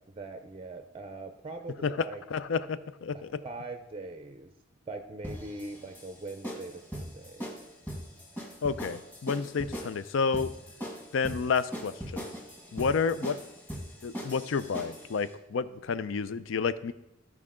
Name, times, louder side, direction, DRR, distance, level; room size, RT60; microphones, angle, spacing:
voice 1, 0.1-2.2 3.1-4.5 4.9-7.5, right 2 dB, 25° right, 7 dB, 0.5 m, -42 dB
voice 2, 2.3-3.1 8.6-10.5 11.1-12.3 12.7-13.4 14.0-16.9, left 5 dB, 70° left, 14 dB, 0.4 m, -30 dB
sound 1, 5.2-15.1, equal, 10° left, 1.5 m, -40 dB
14.0 x 4.8 x 3.7 m, 0.87 s
head